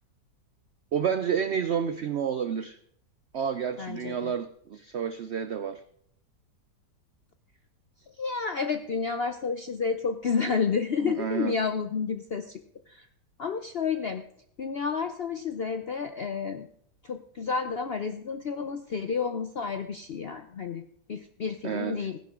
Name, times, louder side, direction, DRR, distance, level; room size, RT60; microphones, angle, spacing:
voice 1, 0.9-2.8 3.3-5.8 11.0-11.5 21.6-22.1, right 7 dB, 75° right, 11 dB, 0.6 m, -30 dB
voice 2, 3.8-4.3 8.2-12.6 12.9-13.1 13.4-14.2 14.6-16.7 17.0-22.2, left 5 dB, 65° left, 8 dB, 0.6 m, -30 dB
15.5 x 10.5 x 3.7 m, 0.64 s
omnidirectional pair, 1.9 m